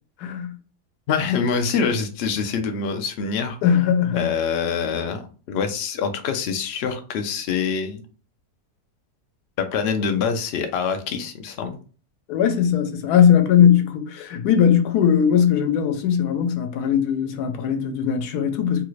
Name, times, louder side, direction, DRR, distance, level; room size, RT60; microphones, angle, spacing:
voice 1, 0.2-0.5 3.6-4.3 12.3-18.8, left 8 dB, 75° left, 1.1 m, -19 dB
voice 2, 1.1-3.6 4.1-8.0 9.6-11.8, left 6 dB, 90° left, 0.5 m, -25 dB
3.1 x 2.4 x 3.0 m
omnidirectional pair, 1.8 m